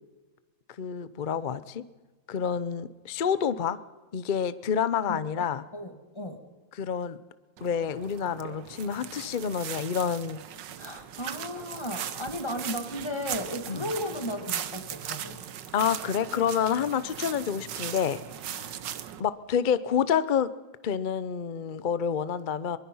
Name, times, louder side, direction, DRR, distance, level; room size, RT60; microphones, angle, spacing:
voice 1, 0.8-1.8 2.3-3.8 4.1-5.6 6.8-7.2 7.6-10.4 13.7-13.8 15.7-18.2 18.5-18.7 19.2-20.5 20.8-22.8, left 7 dB, 65° left, 15 dB, 0.4 m, -28 dB
voice 2, 5.1-5.5 5.7-6.4 10.8-15.4, left 1 dB, 15° left, 5 dB, 2.3 m, -35 dB
sound 1, 7.6-19.2, right 10 dB, 70° right, 1.6 m, -38 dB
23.5 x 21.5 x 5.6 m, 1.2 s
omnidirectional pair, 2.1 m